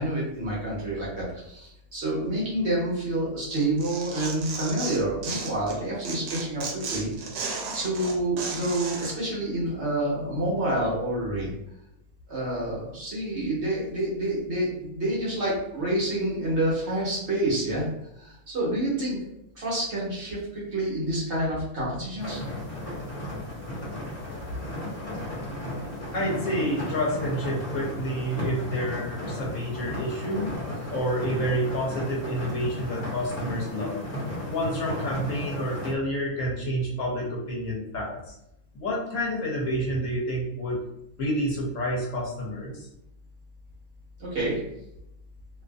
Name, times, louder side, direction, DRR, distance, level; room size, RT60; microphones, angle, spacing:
voice 1, 0.0-7.1 7.7-11.5 12.3-17.9 18.2-19.2 19.5-22.4 44.2-44.6, right 1 dB, 55° right, -6 dB, 1.1 m, -28 dB
Tearing, 3.5-5.8 6.0-9.1, right 4 dB, 85° right, 1.1 m, -34 dB
sound 1, 22.2-35.9, left 1 dB, 30° left, 0.7 m, -34 dB
voice 2, 26.1-30.6 30.9-34.0 34.5-38.3 38.7-40.8 41.2-42.9, equal, 65° left, -3 dB, 0.9 m, -29 dB
2.6 x 2.4 x 2.2 m, 0.82 s
omnidirectional pair, 1.5 m